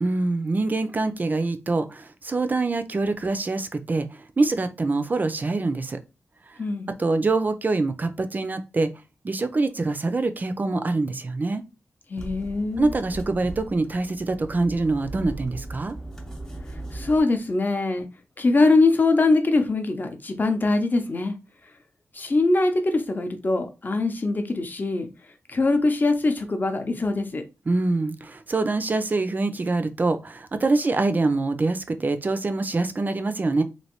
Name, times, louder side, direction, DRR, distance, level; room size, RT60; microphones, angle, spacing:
voice 1, 0.0-4.1 4.4-6.0 7.0-8.9 9.2-11.6 12.8-16.0 27.7-33.6, right 3 dB, 35° right, 0.4 m, -25 dB
voice 2, 6.6-6.9 12.1-12.9 16.9-18.1 18.4-21.3 22.1-25.1 25.5-27.4, left 3 dB, 35° left, 0.6 m, -22 dB
sound 1, 12.2-17.2, right 1 dB, 10° left, 0.8 m, -38 dB
3.1 x 2.6 x 2.9 m
wide cardioid pair, 95°, 5 cm